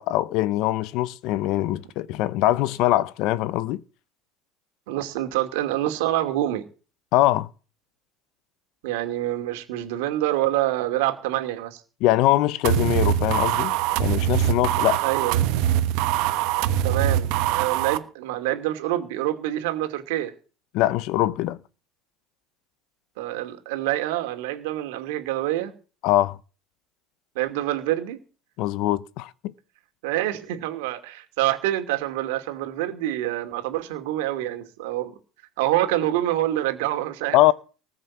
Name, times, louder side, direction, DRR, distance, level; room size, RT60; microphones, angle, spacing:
voice 1, 0.0-3.8 7.1-7.5 12.0-15.0 20.7-21.6 26.0-26.4 28.6-29.5 37.3-37.5, left 15 dB, 55° left, 0.8 m, -22 dB
voice 2, 4.9-6.7 8.8-11.8 15.0-15.4 16.8-20.3 23.2-25.7 27.3-28.2 30.0-35.1 35.6-37.4, right 14 dB, 85° right, 2.6 m, -26 dB
sound 1, 12.6-18.0, right 11 dB, 60° right, 1.2 m, -23 dB
19.5 x 6.6 x 7.3 m
cardioid pair, 160°, 0 cm